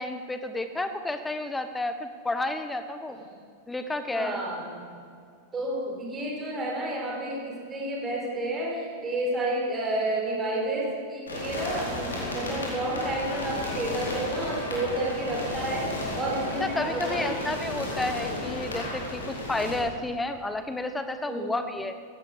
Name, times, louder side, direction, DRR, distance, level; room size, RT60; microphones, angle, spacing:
voice 1, 0.0-3.2 3.7-4.4 16.6-21.9, left 2 dB, 10° left, 10 dB, 1.2 m, -31 dB
voice 2, 4.1-4.8 5.5-17.5 21.3-21.5, right 1 dB, 20° right, -2 dB, 4.6 m, -31 dB
sound 1, 11.3-19.8, left 2 dB, 70° left, 4.2 m, -33 dB
sound 2, 14.8-19.0, right 5 dB, 35° right, 2.8 m, -43 dB
17.0 x 15.5 x 5.2 m, 2.3 s
figure-of-eight pair, 90°, 0 cm